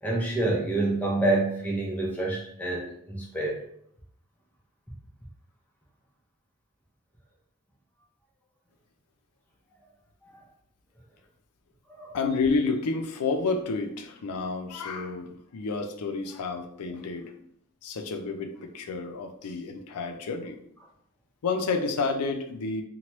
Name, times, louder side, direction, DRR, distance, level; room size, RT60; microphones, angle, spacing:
voice 1, 0.0-3.6 10.2-10.3 11.9-12.2, right 2 dB, 5° left, -3 dB, 0.6 m, -27 dB
voice 2, 12.1-17.4 17.8-20.6 21.4-22.8, left 4 dB, 90° left, 6 dB, 0.4 m, -30 dB
3.0 x 2.2 x 2.9 m, 0.70 s
head